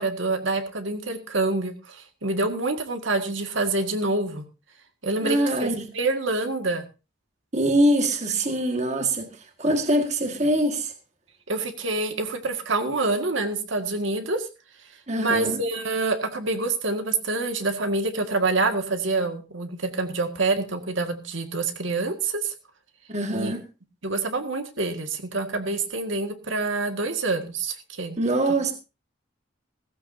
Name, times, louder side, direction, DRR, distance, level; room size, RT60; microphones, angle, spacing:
voice 1, 0.0-4.4 5.0-6.8 11.5-14.5 15.2-22.5 23.3-23.5 24.0-28.2, right 3 dB, 75° right, 1.9 m, -26 dB
voice 2, 5.2-5.9 7.5-9.3 9.6-10.9 15.1-15.6 23.1-23.6 28.2-28.7, right 1 dB, 35° right, 1.7 m, -23 dB
16.5 x 14.5 x 2.7 m
head